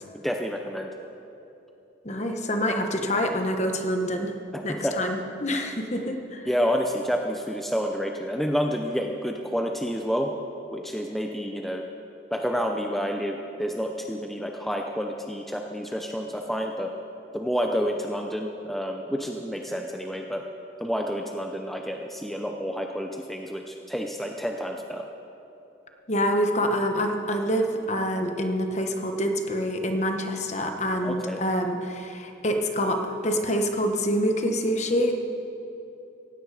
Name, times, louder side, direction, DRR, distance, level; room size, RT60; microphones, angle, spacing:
voice 1, 0.2-0.9 4.5-5.0 6.5-10.3 10.7-11.8 12.3-16.9 17.3-20.4 20.8-25.1 31.0-31.4, equal, ahead, 2 dB, 0.6 m, -29 dB
voice 2, 2.0-4.3 4.6-6.5 26.1-35.1, equal, 35° left, 5 dB, 1.2 m, -26 dB
16.5 x 16.5 x 4.9 m, 3.0 s
head